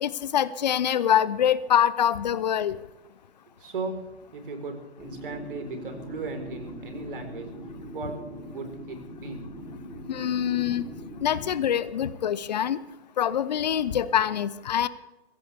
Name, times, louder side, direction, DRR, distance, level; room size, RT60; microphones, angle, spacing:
voice 1, 0.0-2.8 10.1-10.8 11.2-12.8 13.2-14.9, left 9 dB, 40° left, 17 dB, 0.9 m, -24 dB
voice 2, 3.6-7.5 7.9-8.2 8.5-9.4, right 3 dB, 55° right, 5 dB, 4.3 m, -36 dB
sound 1, 5.0-11.6, equal, 5° right, 7.3 m, -41 dB
22.5 x 16.5 x 3.5 m, 1.1 s
figure-of-eight pair, 135°, 33 cm